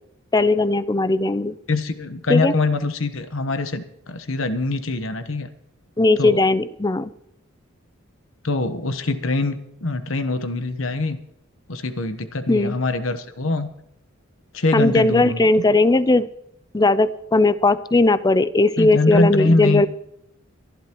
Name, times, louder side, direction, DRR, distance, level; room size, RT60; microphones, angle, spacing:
voice 1, 0.3-1.5 2.3-2.5 6.0-7.1 12.5-12.8 14.7-16.3 16.7-19.9, left 2 dB, 20° left, 15 dB, 0.5 m, -18 dB
voice 2, 1.7-5.5 6.2-6.4 8.4-11.2 11.7-13.7 14.5-15.5 18.8-19.9, left 2 dB, 70° left, 11 dB, 1.1 m, -23 dB
23.5 x 11.5 x 3.0 m, 0.77 s
head